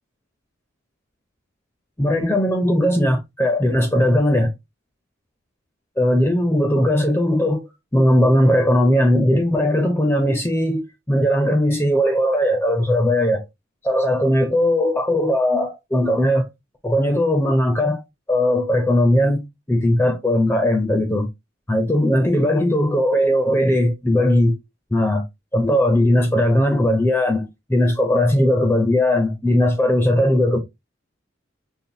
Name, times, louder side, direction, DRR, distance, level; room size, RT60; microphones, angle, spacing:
voice 1, 2.0-4.5 6.0-13.5 13.8-16.5 16.8-18.0 18.3-21.3 21.7-24.6 24.9-25.2 25.5-30.6, left 1 dB, 10° left, 0.5 m, -18 dB
5.4 x 2.2 x 2.7 m
head